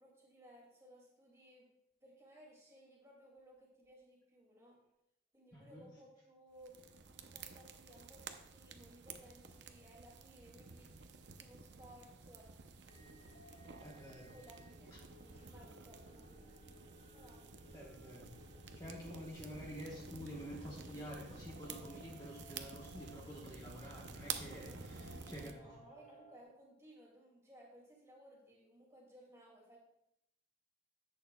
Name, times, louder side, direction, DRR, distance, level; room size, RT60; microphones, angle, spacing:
voice 1, 0.0-1.7 2.0-4.8 5.3-6.8 7.2-12.5 14.1-16.6 17.1-17.4 25.3-29.8, right 1 dB, 15° right, -3 dB, 2.2 m, -60 dB
voice 2, 5.5-5.9 13.8-14.3 14.9-15.0 17.7-18.3 18.7-25.7, equal, 20° left, -4 dB, 1.0 m, -49 dB
sound 1, 6.6-25.5, right 5 dB, 65° right, 0.6 m, -51 dB
sound 2, 12.9-26.4, equal, 40° left, 1.9 m, -61 dB
11.0 x 8.1 x 2.2 m, 0.83 s
head